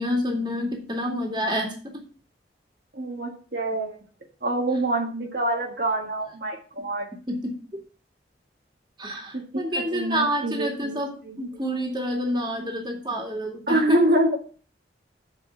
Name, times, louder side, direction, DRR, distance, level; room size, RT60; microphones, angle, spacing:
voice 1, 0.0-2.0 7.3-7.6 9.0-14.0, equal, 25° right, 1 dB, 2.2 m, -28 dB
voice 2, 2.9-4.0 4.4-7.1 9.3-9.6 9.9-11.0 11.3-11.4 13.7-14.4, right 1 dB, 55° right, 1 dB, 1.5 m, -25 dB
7.2 x 5.2 x 7.0 m, 0.39 s
head